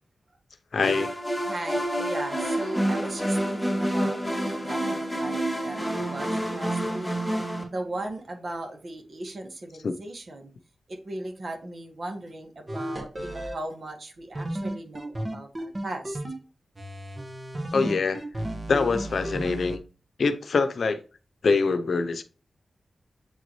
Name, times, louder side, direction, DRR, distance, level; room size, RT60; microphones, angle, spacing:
voice 1, 0.7-1.2 9.8-9.9 17.7-18.3 18.7-19.8 20.2-21.0 21.4-22.2, left 4 dB, 75° left, 0.7 m, -24 dB
sound 1, 0.8-7.6, right 1 dB, 5° left, 2.2 m, -28 dB
voice 2, 1.5-7.1 7.7-10.5 10.9-16.2 18.6-18.7, right 1 dB, 55° right, 1.7 m, -37 dB
sound 2, 12.7-13.6 14.4-16.4 16.8-19.8, right 1 dB, 30° right, 1.4 m, -33 dB
8.1 x 4.0 x 3.1 m
cardioid pair, 65°, 0 cm